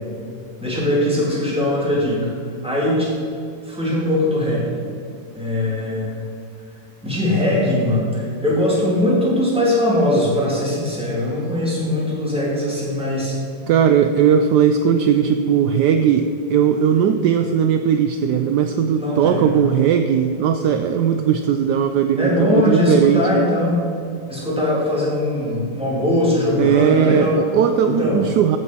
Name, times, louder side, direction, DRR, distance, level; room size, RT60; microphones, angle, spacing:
voice 1, 0.6-2.3 2.6-3.1 3.6-4.8 5.3-6.1 7.0-13.4 19.0-19.5 22.2-23.8 24.3-27.4 27.8-28.2, left 1 dB, 5° right, -6 dB, 3.3 m, -20 dB
voice 2, 13.7-23.4 26.6-28.6, right 8 dB, 75° right, 8 dB, 1.0 m, -18 dB
15.0 x 6.4 x 6.2 m, 2.6 s
omnidirectional pair, 2.1 m